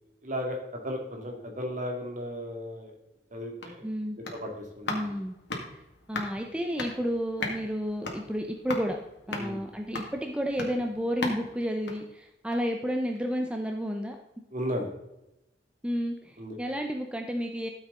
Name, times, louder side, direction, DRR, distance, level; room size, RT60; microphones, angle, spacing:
voice 1, 0.2-0.6 0.8-2.9 3.3-3.9 4.3-5.2 9.4-9.6 14.5-14.9 16.4-16.6, equal, 45° right, 2 dB, 2.3 m, -35 dB
sound 1, 3.2-12.8 13.1-13.2, left 3 dB, 65° left, 2.0 m, -39 dB
voice 2, 3.8-4.2 4.9-5.4 6.1-9.0 9.3-14.2 15.8-17.7, equal, 5° right, 3 dB, 0.7 m, -31 dB
13.0 x 7.4 x 3.8 m, 0.90 s
head